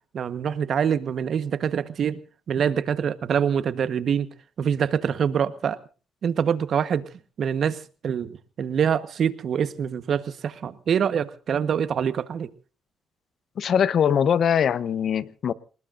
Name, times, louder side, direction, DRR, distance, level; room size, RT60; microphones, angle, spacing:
voice 1, 0.1-2.2 2.5-4.3 4.6-5.8 6.2-7.1 7.4-8.3 8.6-12.5, right 8 dB, 55° right, 13 dB, 1.3 m, -25 dB
voice 2, 13.6-15.5, left 8 dB, 60° left, 18 dB, 0.9 m, -22 dB
28.0 x 19.0 x 2.6 m, 0.36 s
cardioid pair, 95°, 0 cm